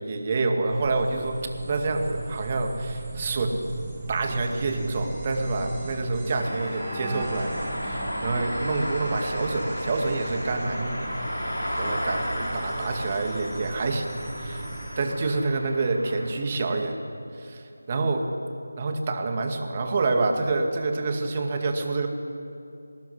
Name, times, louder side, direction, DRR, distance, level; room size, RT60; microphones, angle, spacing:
voice 1, 0.0-1.4 1.7-3.6 4.1-7.5 7.8-11.1 11.8-14.7 15.0-17.0 17.3-18.3 18.8-22.1, right 3 dB, 30° right, 4 dB, 2.1 m, -27 dB
sound 1, 0.7-15.0, right 3 dB, 15° right, 2.9 m, -37 dB
sound 2, 6.3-16.3, equal, 85° left, 5.9 m, -33 dB
21.5 x 19.0 x 9.9 m, 2.6 s
figure-of-eight pair, 165°, 0 cm